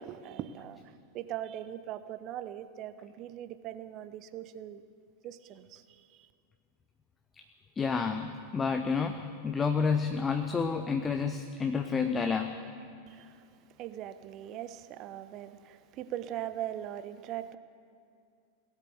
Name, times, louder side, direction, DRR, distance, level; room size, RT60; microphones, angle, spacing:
voice 1, 0.0-4.8 5.2-6.3 13.1-13.5 13.8-17.6, right 11 dB, 35° right, 0.6 m, -41 dB
voice 2, 7.8-12.6, left 5 dB, 20° left, 0.6 m, -30 dB
18.0 x 8.3 x 8.0 m
figure-of-eight pair, 90°, 0 cm